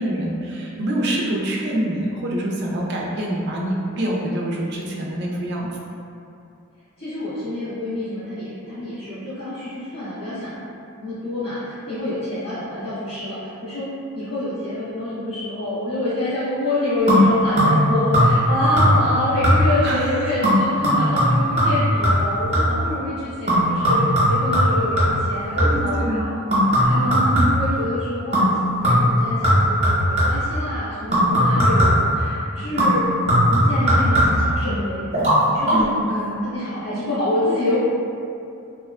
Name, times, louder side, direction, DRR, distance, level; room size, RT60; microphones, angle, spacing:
voice 1, 0.0-5.7 19.8-20.3 25.6-26.4 26.9-27.5 35.7-36.5, right 1 dB, 50° right, -3 dB, 0.4 m, -26 dB
voice 2, 7.0-10.6 11.0-13.9 14.1-26.4 26.7-28.6 28.8-33.0 33.5-35.1 35.5-35.9 36.4-37.8, left 1 dB, 85° left, -18 dB, 1.2 m, -27 dB
sound 1, 17.1-17.9 18.1-18.5 18.8-19.1 19.4-19.9 20.4-22.9 23.5-25.9 26.5-27.8 28.3-28.6 28.8-30.5 31.1-32.1 32.8-34.5 35.1-35.4 35.6-35.7, equal, 30° right, 0.9 m, -18 dB
2.8 x 2.2 x 2.3 m, 2.6 s
head